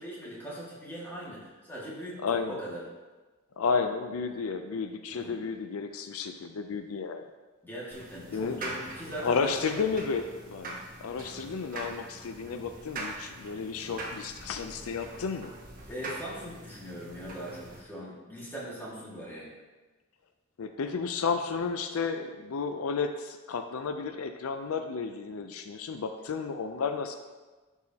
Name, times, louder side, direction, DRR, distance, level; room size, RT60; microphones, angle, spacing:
voice 1, 0.0-2.9 5.1-5.4 7.6-9.7 15.9-19.5, equal, 10° left, -6 dB, 1.9 m, -40 dB
voice 2, 2.2-2.5 3.6-7.2 8.3-8.6 9.2-15.5 20.6-27.1, left 5 dB, 85° left, 8 dB, 0.4 m, -32 dB
sound 1, 7.9-17.8, right 2 dB, 40° right, 1.1 m, -43 dB
10.5 x 4.8 x 2.8 m, 1.3 s
head